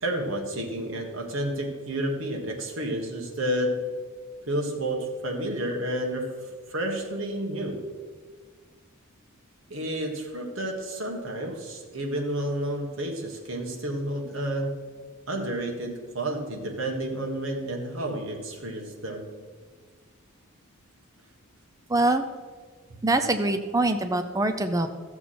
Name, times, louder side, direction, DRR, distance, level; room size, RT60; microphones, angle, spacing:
voice 1, 0.0-3.8 4.5-6.3 6.7-7.9 9.7-14.7 15.3-19.2 22.9-23.0, right 1 dB, 65° right, 1 dB, 1.5 m, -30 dB
voice 2, 21.9-22.3 23.0-24.9, right 2 dB, 15° right, 7 dB, 0.5 m, -24 dB
14.0 x 7.1 x 4.3 m, 1.5 s
head